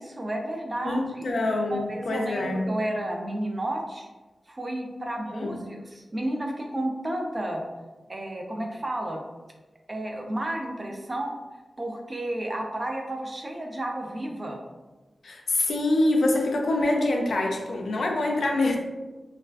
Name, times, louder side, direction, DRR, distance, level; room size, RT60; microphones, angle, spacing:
voice 1, 0.0-1.2 1.7-4.1 4.5-7.6 8.1-9.2 9.9-11.4 11.8-14.6, right 1 dB, 30° right, 1 dB, 0.4 m, -32 dB
voice 2, 0.8-2.7 5.4-5.6 15.2-18.8, left 2 dB, 80° left, 1 dB, 0.4 m, -25 dB
2.4 x 2.3 x 2.3 m, 1.2 s
wide cardioid pair, 85°, 0 cm